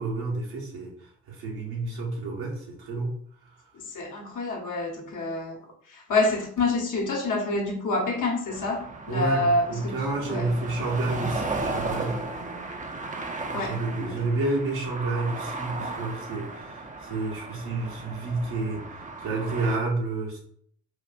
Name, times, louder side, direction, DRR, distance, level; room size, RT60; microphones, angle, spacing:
voice 1, 0.0-3.1 9.1-12.2 13.5-18.8 19.2-20.4, right 3 dB, 65° right, -2 dB, 1.1 m, -30 dB
voice 2, 3.9-5.6 5.9-10.0 10.2-10.5 13.5-13.8 14.0-14.2, left 2 dB, 50° left, 0 dB, 1.0 m, -27 dB
sound 1, 8.5-19.8, right 3 dB, 20° right, 0.6 m, -35 dB
4.4 x 2.4 x 2.2 m, 0.62 s
hypercardioid pair, 40°, 39 cm